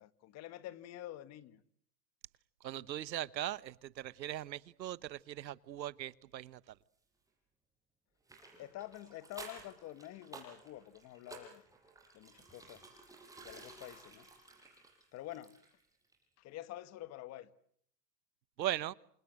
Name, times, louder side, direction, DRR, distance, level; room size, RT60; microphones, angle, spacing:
voice 1, 0.0-1.6 8.6-11.6 12.1-12.9 13.4-14.3 15.1-15.6 16.4-17.5, left 14 dB, 30° left, 1.4 m, -48 dB
voice 2, 2.6-6.8 18.6-18.9, right 13 dB, 90° right, 1.2 m, -39 dB
sound 1, 8.3-15.9 16.1-16.2, right 3 dB, 5° right, 6.6 m, -54 dB
28.5 x 26.0 x 7.7 m
hypercardioid pair, 135°, 50 cm